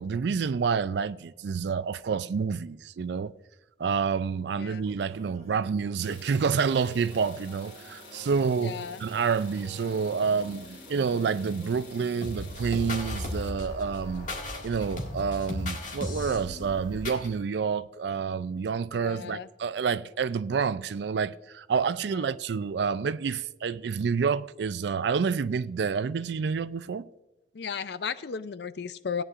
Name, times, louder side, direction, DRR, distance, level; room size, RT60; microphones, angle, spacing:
voice 1, 0.0-3.3 3.8-14.3 14.6-27.1, right 5 dB, 65° right, 0.4 m, -28 dB
sound 1, 4.7-15.3, right 1 dB, 35° right, 1.8 m, -51 dB
sound 2, 6.0-13.5, left 4 dB, 80° left, 2.3 m, -50 dB
voice 2, 8.6-9.0 19.0-19.5 22.2-22.3 27.5-29.2, left 6 dB, 60° left, 0.4 m, -35 dB
sound 3, 12.2-17.3, left 1 dB, 40° left, 1.9 m, -35 dB
17.0 x 9.8 x 2.5 m
head